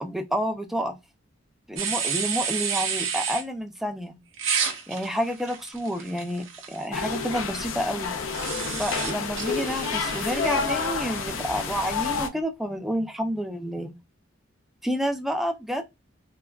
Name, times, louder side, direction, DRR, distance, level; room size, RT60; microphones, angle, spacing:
voice 1, 0.0-1.0 1.7-4.2 4.9-8.1 8.8-13.9 14.8-15.8, equal, ahead, 0.4 m, -29 dB
sound 1, 1.8-3.4 4.4-6.8 8.3-10.9, right 7 dB, 70° right, 0.7 m, -31 dB
sound 2, 6.9-12.3, left 5 dB, 75° left, 0.5 m, -29 dB
3.3 x 2.1 x 2.3 m
head